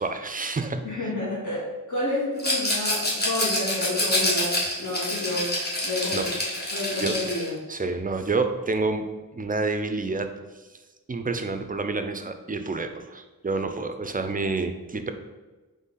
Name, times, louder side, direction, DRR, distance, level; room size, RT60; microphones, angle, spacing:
voice 1, 0.0-0.9 6.1-6.3 6.6-7.2 7.7-10.3 11.1-15.1, right 3 dB, 25° right, 8 dB, 0.4 m, -28 dB
voice 2, 0.8-5.5 5.8-6.3 6.7-7.6, left 2 dB, 50° left, -7 dB, 1.4 m, -30 dB
Rattle, 2.4-7.5, left 1 dB, 25° left, 1.3 m, -27 dB
4.0 x 3.2 x 3.8 m, 1.2 s
wide cardioid pair, 50°, 38 cm